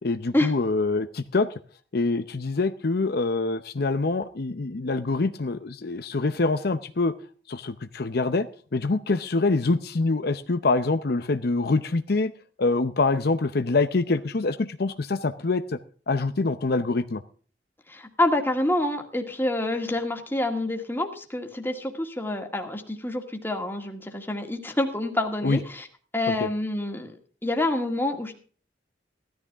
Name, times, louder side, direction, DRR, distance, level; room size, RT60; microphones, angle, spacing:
voice 1, 0.0-1.5 1.9-7.1 7.5-8.5 8.7-12.3 12.6-15.8 16.1-17.2 25.4-25.6 26.3-26.5, left 3 dB, 60° left, 10 dB, 0.7 m, -25 dB
voice 2, 17.9-25.9 26.1-27.2 27.4-28.4, left 1 dB, 10° left, 4 dB, 2.0 m, -27 dB
16.0 x 13.0 x 3.5 m, 0.41 s
head